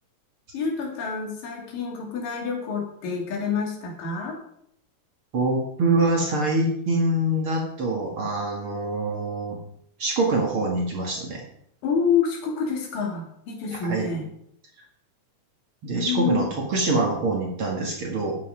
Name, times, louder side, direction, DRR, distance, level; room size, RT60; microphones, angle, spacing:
voice 1, 0.5-4.4 11.8-14.3 15.9-16.5, left 6 dB, 75° left, 1 dB, 4.3 m, -27 dB
voice 2, 5.3-9.6 10.0-11.4 13.8-14.1 15.8-18.4, right 2 dB, 45° right, 0 dB, 2.4 m, -24 dB
13.0 x 9.1 x 5.0 m, 0.70 s
omnidirectional pair, 3.9 m